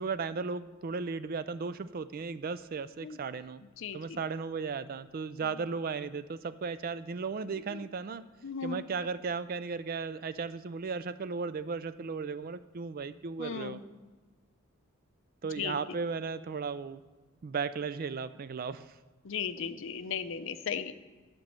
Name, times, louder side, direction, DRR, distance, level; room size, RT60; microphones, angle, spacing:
voice 1, 0.0-3.6 3.9-8.2 8.6-13.8 15.4-17.0 17.4-18.9, right 5 dB, 45° right, 14 dB, 0.4 m, -35 dB
voice 2, 3.8-4.2 7.7-7.8 8.4-8.8 13.4-13.8 15.6-15.8 19.2-20.9, left 6 dB, 65° left, 12 dB, 0.6 m, -36 dB
11.5 x 5.3 x 7.5 m, 1.3 s
head